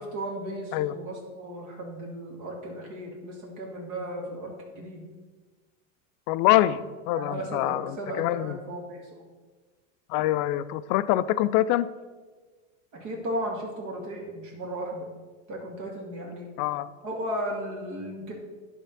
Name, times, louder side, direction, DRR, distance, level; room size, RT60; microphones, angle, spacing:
voice 1, 0.0-5.1 7.1-9.1 12.9-15.1 15.5-16.5 17.0-18.3, right 1 dB, 50° right, -1 dB, 2.1 m, -35 dB
voice 2, 6.3-8.6 10.1-11.9 16.6-16.9, left 14 dB, 50° left, 15 dB, 0.5 m, -25 dB
10.5 x 3.7 x 5.8 m, 1.3 s
supercardioid pair, 115°, 38 cm